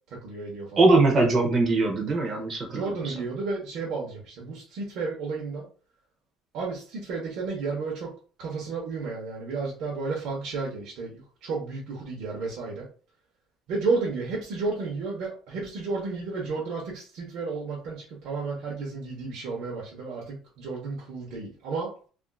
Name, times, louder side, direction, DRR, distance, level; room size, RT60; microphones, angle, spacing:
voice 1, 0.2-0.9 2.7-5.6 6.5-8.1 8.4-12.9 13.7-21.9, right 4 dB, 60° right, -4 dB, 1.0 m, -32 dB
voice 2, 0.8-3.1, right 3 dB, 30° right, 2 dB, 0.7 m, -22 dB
3.4 x 2.5 x 2.3 m, 0.39 s
cardioid pair, 160°, 0 cm